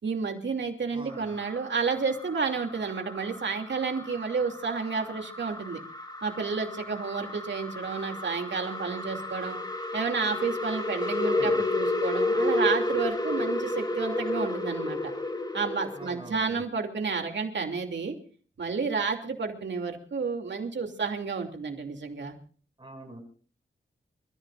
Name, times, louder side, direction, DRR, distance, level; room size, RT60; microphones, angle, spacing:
voice 1, 0.0-5.8 6.2-9.6 9.9-15.1 15.5-18.2 18.6-22.3, right 5 dB, 65° right, 3 dB, 2.9 m, -31 dB
voice 2, 0.9-1.4 11.2-11.6 15.9-16.6 22.8-23.2, right 2 dB, 25° right, 2 dB, 6.7 m, -43 dB
sound 1, 1.1-16.2, left 2 dB, 20° left, 2.5 m, -32 dB
28.5 x 15.0 x 2.5 m, 0.43 s
wide cardioid pair, 115°, 20 cm